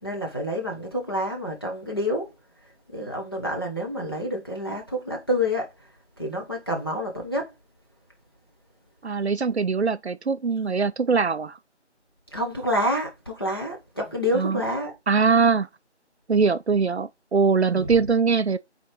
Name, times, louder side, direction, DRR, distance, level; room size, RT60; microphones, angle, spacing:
voice 1, 0.0-2.3 2.9-5.9 6.2-7.5 12.3-14.9 17.7-18.0, equal, 20° left, 0.9 m, -28 dB
voice 2, 9.0-11.6 14.3-14.6 15.1-15.7 16.3-18.6, right 5 dB, 65° right, 0.5 m, -22 dB
5.2 x 4.4 x 4.6 m
figure-of-eight pair, 165°, 35 cm